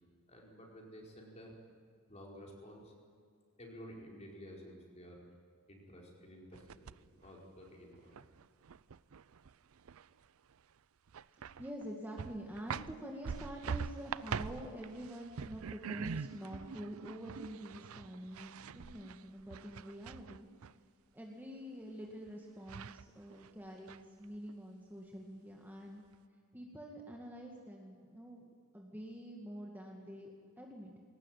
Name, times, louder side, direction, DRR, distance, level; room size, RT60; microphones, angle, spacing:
voice 1, 0.3-1.6 2.1-2.9 3.6-5.2 5.7-8.2, equal, 30° left, -1 dB, 4.8 m, -52 dB
sound 1, 6.5-7.3 7.7-10.2 10.5-10.6 11.1-11.9 12.2-20.7 22.3-22.4 22.7-23.5 23.9-24.5, right 6 dB, 75° right, 0.5 m, -44 dB
voice 2, 11.4-20.5 21.1-26.0 26.5-28.4 28.7-31.0, equal, 10° right, -1 dB, 2.0 m, -47 dB
21.5 x 18.5 x 9.2 m, 2.1 s
head